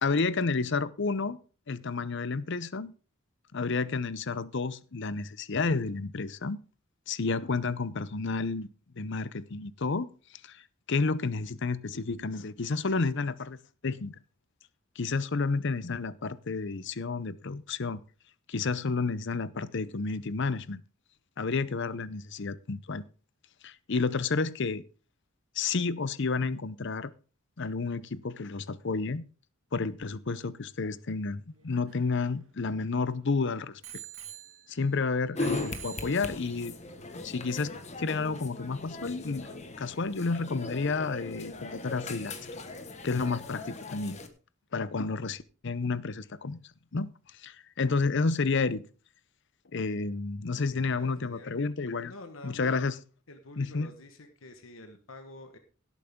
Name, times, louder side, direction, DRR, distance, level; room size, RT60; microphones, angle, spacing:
voice 1, 0.0-1.4 1.7-2.9 3.5-6.6 7.1-8.7 9.0-10.1 10.4-10.6 10.9-14.2 15.0-18.0 18.5-20.8 21.4-23.0 23.6-24.8 25.6-27.1 27.6-29.2 29.7-33.8 34.7-36.7 37.2-39.5 39.8-42.5 43.0-44.2 44.7-46.6 46.9-48.8 49.7-52.1 52.4-53.0 53.6-53.9, left 4 dB, 60° left, 0.7 m, -31 dB
Bicycle bell, 31.5-33.2 33.8-35.0 35.4-36.6 37.4-37.5, right 11 dB, 85° right, 2.2 m, -47 dB
sound 1, 35.3-44.3, left 2 dB, 35° left, 1.4 m, -39 dB
voice 2, 50.7-51.6 52.0-52.8 53.3-55.6, left 2 dB, 75° left, 1.4 m, -48 dB
17.0 x 8.3 x 3.7 m
head